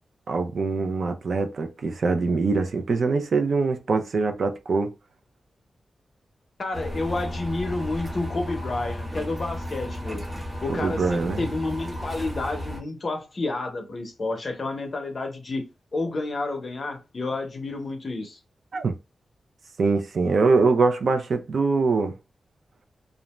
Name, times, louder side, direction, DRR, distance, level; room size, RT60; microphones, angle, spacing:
voice 1, 0.3-4.9 10.7-11.4 18.7-18.9 19.8-22.1, right 4 dB, 65° right, 0.5 m, -23 dB
voice 2, 6.6-10.3 10.6-18.4, left 2 dB, 45° left, 0.7 m, -30 dB
sound 1, 6.7-12.8, left 1 dB, 30° right, 0.9 m, -34 dB
2.5 x 2.1 x 3.0 m
wide cardioid pair, 110°, 0 cm